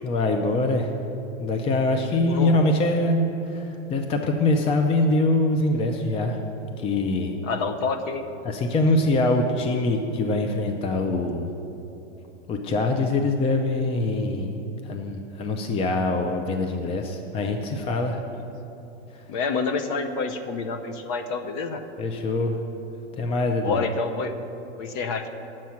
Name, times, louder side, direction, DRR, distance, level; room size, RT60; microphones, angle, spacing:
voice 1, 0.0-0.9 1.4-6.4 6.8-7.4 8.4-11.5 12.5-18.2 19.1-19.2 22.0-22.6 23.2-23.9, left 2 dB, 15° left, 4 dB, 0.5 m, -24 dB
voice 2, 7.4-8.2 19.3-21.8 23.6-24.3 24.8-25.3, left 4 dB, 45° left, 8 dB, 0.8 m, -28 dB
9.1 x 7.4 x 5.8 m, 2.9 s
hypercardioid pair, 125°, 35 cm